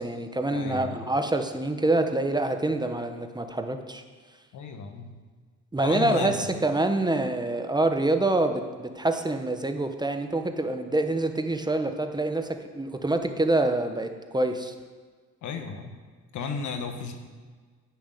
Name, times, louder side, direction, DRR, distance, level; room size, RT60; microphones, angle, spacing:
voice 1, 0.0-4.0 5.7-14.7, right 2 dB, 15° right, 6 dB, 0.9 m, -26 dB
voice 2, 0.5-1.0 4.5-5.1 5.8-6.3 15.4-16.0 16.3-17.1, left 5 dB, 75° left, 5 dB, 1.4 m, -34 dB
10.0 x 6.1 x 8.3 m, 1.5 s
cardioid pair, 90°, 30 cm